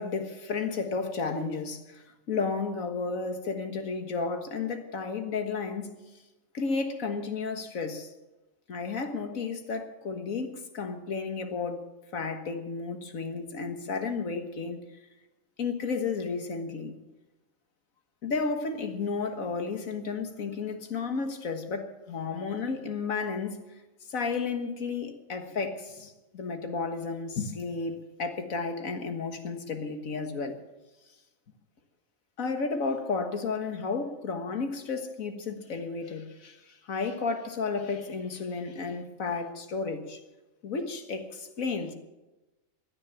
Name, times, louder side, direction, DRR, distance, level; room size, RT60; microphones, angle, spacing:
voice 1, 0.0-5.9 6.5-8.1 8.7-11.8 12.1-14.8 15.6-16.9 18.2-23.6 24.1-30.6 32.4-40.2 40.6-41.9, left 4 dB, 90° left, 1.9 m, -32 dB
16.0 x 11.0 x 7.1 m
omnidirectional pair, 1.4 m